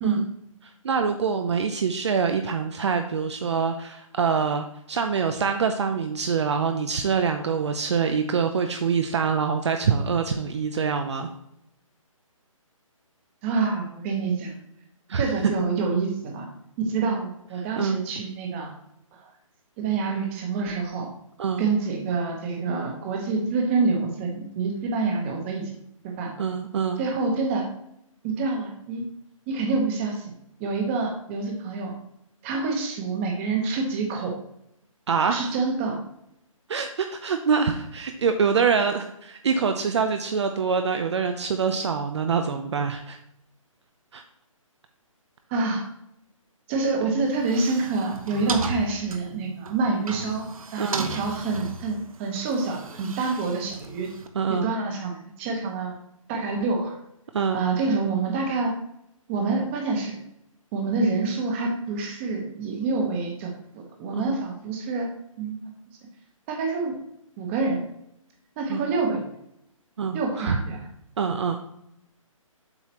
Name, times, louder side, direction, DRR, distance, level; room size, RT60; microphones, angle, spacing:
voice 1, 0.8-11.3 15.1-15.5 17.8-18.0 21.4-21.7 26.4-27.0 35.1-35.5 36.7-43.2 44.1-44.2 50.8-51.1 54.3-54.7 57.3-57.6 64.1-64.2 68.7-68.8 70.0-70.6 71.2-71.6, right 6 dB, 55° right, 6 dB, 0.6 m, -25 dB
voice 2, 13.4-14.5 15.2-16.5 16.8-18.7 19.1-19.2 19.8-21.1 21.6-25.7 26.2-26.3 27.0-27.7 28.2-29.1 29.5-30.3 30.6-31.9 32.4-34.4 35.3-36.0 45.5-45.8 46.7-50.4 50.7-54.1 54.5-56.0 56.3-57.0 57.5-58.7 59.3-60.2 60.7-65.1 65.4-65.6 66.5-67.0 67.4-67.8 68.6-69.2 70.1-70.9, right 4 dB, 20° right, 2 dB, 1.2 m, -27 dB
sound 1, 47.3-54.3, right 3 dB, 80° right, 0.9 m, -36 dB
7.8 x 5.6 x 3.1 m, 0.76 s
hypercardioid pair, 155°, 18 cm